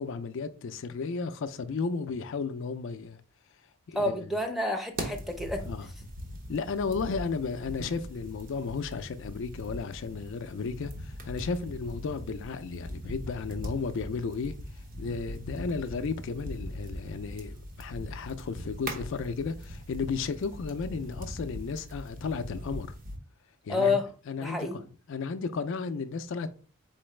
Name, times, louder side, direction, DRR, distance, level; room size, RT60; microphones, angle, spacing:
voice 1, 0.0-3.2 3.9-4.3 5.7-5.9 6.5-14.5 15.0-23.0 23.6-24.0 24.3-24.8 25.1-26.5, left 4 dB, 60° left, 0.4 m, -34 dB
voice 2, 3.9-5.7 23.7-24.1 24.4-24.8, left 3 dB, ahead, 0.6 m, -29 dB
sound 1, 4.9-23.2, equal, 40° right, 0.8 m, -41 dB
4.3 x 3.9 x 3.2 m
head